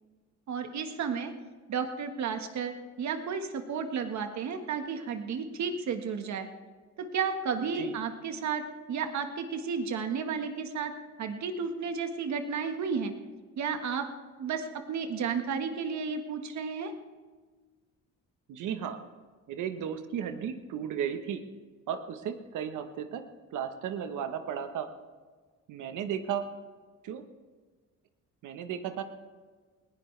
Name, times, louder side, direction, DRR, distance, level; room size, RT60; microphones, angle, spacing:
voice 1, 0.5-1.3 1.7-6.5 7.0-10.9 11.2-13.1 13.6-14.1 14.4-16.9, right 6 dB, 65° right, 6 dB, 1.5 m, -32 dB
voice 2, 7.7-8.0 18.5-19.0 19.5-21.4 21.9-23.2 23.5-24.9 25.7-26.5 27.0-27.2 28.4-29.0, right 8 dB, 80° right, 8 dB, 1.1 m, -34 dB
19.5 x 15.5 x 3.3 m, 1.4 s
cardioid pair, 90°, 30 cm